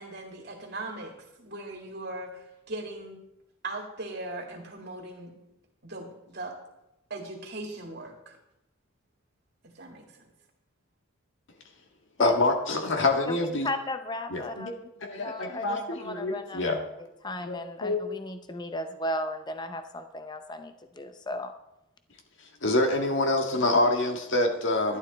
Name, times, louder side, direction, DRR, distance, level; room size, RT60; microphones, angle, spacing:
voice 1, 0.0-3.2 3.6-5.3 5.8-6.6 7.1-8.4 9.7-10.2, right 2 dB, 50° right, 0 dB, 2.0 m, -39 dB
voice 2, 12.2-13.7 14.3-14.7 15.0-16.8 17.4-18.0 22.6-25.0, left 2 dB, 65° left, 3 dB, 1.8 m, -26 dB
voice 3, 13.6-14.9 15.2-16.8 17.2-21.5, left 1 dB, 20° left, 8 dB, 0.6 m, -35 dB
11.5 x 11.0 x 4.1 m, 0.88 s
head